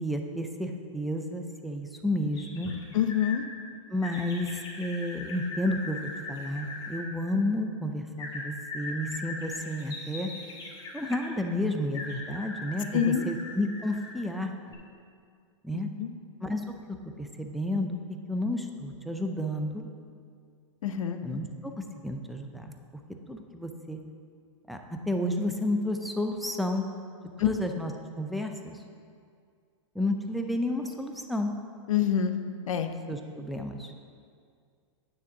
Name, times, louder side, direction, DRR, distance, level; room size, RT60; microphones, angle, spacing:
voice 1, 0.0-2.7 3.9-10.3 10.9-14.5 15.6-15.9 16.4-18.0 18.3-19.9 21.2-22.7 23.3-24.0 24.7-26.9 27.4-27.9 28.2-28.8 29.9-31.5 33.1-33.9, left 1 dB, ahead, 4 dB, 0.5 m, -31 dB
sound 1, 2.3-3.4 4.0-7.0 8.2-11.3 11.9-14.2 14.7-14.8, left 3 dB, 25° left, 1.8 m, -40 dB
voice 2, 2.9-3.4 12.9-13.2 16.0-16.1 20.8-21.2 27.4-27.5 31.9-32.3 32.7-32.9, left 9 dB, 85° left, 8 dB, 0.7 m, -25 dB
9.5 x 3.5 x 7.0 m, 2.2 s
hypercardioid pair, 135°, 17 cm